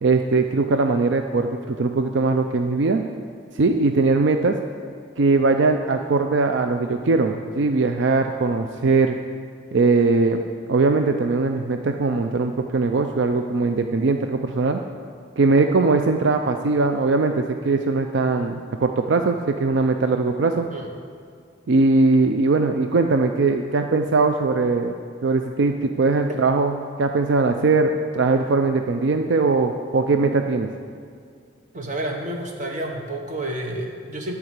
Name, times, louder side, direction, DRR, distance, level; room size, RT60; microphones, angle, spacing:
voice 1, 0.0-3.0 3.6-4.6 5.2-9.2 9.7-10.4 10.7-14.8 15.4-20.7 21.7-24.9 25.2-26.7 27.0-30.7, right 3 dB, 75° right, 6 dB, 0.5 m, -20 dB
voice 2, 31.7-34.3, right 1 dB, 40° right, 1 dB, 1.2 m, -30 dB
10.5 x 4.8 x 8.2 m, 2.2 s
head